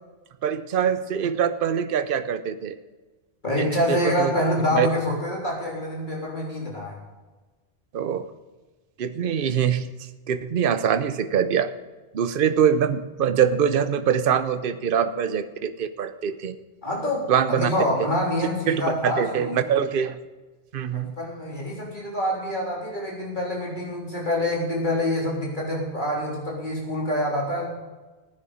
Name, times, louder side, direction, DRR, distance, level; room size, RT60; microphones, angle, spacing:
voice 1, 0.4-2.8 3.6-4.3 4.7-4.9 7.9-8.3 9.0-9.9 10.3-11.7 12.1-16.6 17.3-17.7 18.7-20.2 20.7-21.1, right 8 dB, 60° right, 11 dB, 0.9 m, -23 dB
voice 2, 3.4-7.0 16.8-19.5 20.9-27.7, left 1 dB, 50° left, -3 dB, 3.8 m, -26 dB
15.0 x 9.9 x 5.0 m, 1.2 s
omnidirectional pair, 1.0 m